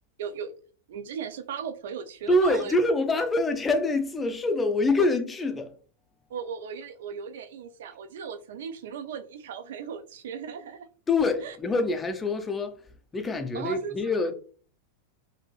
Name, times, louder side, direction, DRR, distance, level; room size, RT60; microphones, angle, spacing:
voice 1, 0.2-0.5 0.9-2.7 6.3-10.9 11.4-11.6 13.5-14.0, right 7 dB, 60° right, 0.3 m, -37 dB
voice 2, 2.3-5.7 11.1-12.8 13.1-14.3, left 2 dB, 15° left, 0.4 m, -25 dB
2.7 x 2.5 x 2.8 m
figure-of-eight pair, 90°, 0 cm